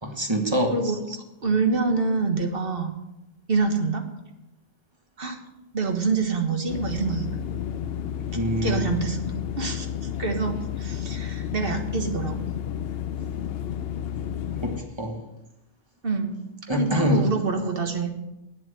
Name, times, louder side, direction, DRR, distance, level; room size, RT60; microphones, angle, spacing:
voice 1, 0.0-0.8 8.3-8.9 14.6-15.2 16.7-17.3, equal, 25° right, 3 dB, 1.6 m, -25 dB
voice 2, 0.7-2.9 3.5-4.0 5.2-5.4 5.7-7.3 8.6-9.9 10.2-12.5 16.0-16.3 16.7-18.1, right 4 dB, 55° right, 5 dB, 1.6 m, -26 dB
sound 1, 6.7-14.8, left 9 dB, 65° left, 0.8 m, -31 dB
9.4 x 7.5 x 7.9 m, 0.92 s
omnidirectional pair, 1.2 m